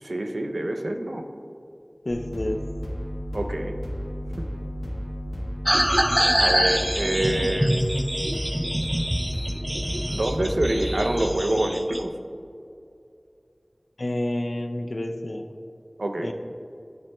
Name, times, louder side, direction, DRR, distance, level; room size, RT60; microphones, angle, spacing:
voice 1, 0.0-1.2 3.3-3.7 6.4-7.7 10.1-12.1 16.0-16.3, right 1 dB, 90° right, 5 dB, 0.5 m, -26 dB
voice 2, 2.1-2.6 14.0-15.5 16.2-16.3, left 1 dB, 70° left, 5 dB, 0.4 m, -29 dB
sound 1, 2.1-11.3, equal, 45° left, 1.2 m, -33 dB
sound 2, 5.7-12.0, equal, 15° right, 0.4 m, -25 dB
10.5 x 5.9 x 2.2 m, 2.5 s
wide cardioid pair, 45°, 0 cm